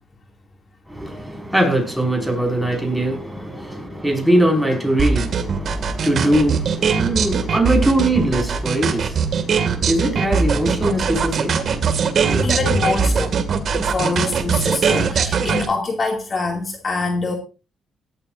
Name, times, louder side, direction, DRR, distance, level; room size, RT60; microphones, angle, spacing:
voice 1, 0.9-12.6, right 1 dB, ahead, 5.5 m, -21 dB
sound 1, 5.0-15.7, right 6 dB, 55° right, 2.2 m, -20 dB
voice 2, 12.4-13.3 13.7-17.3, left 3 dB, 40° left, 2.5 m, -24 dB
17.5 x 12.5 x 2.6 m
cardioid pair, 90°, 0 cm